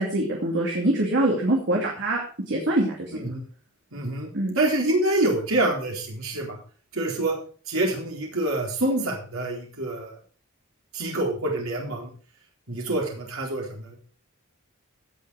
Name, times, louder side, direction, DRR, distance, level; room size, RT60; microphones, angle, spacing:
voice 1, 0.0-3.2 4.3-4.6, right 1 dB, 55° right, -1 dB, 2.6 m, -24 dB
voice 2, 3.1-3.4 3.9-4.3 4.6-6.6 6.9-7.4 7.7-10.1 10.9-12.1 12.7-14.0, right 2 dB, 70° right, -1 dB, 4.1 m, -26 dB
16.5 x 6.6 x 4.8 m, 0.41 s
head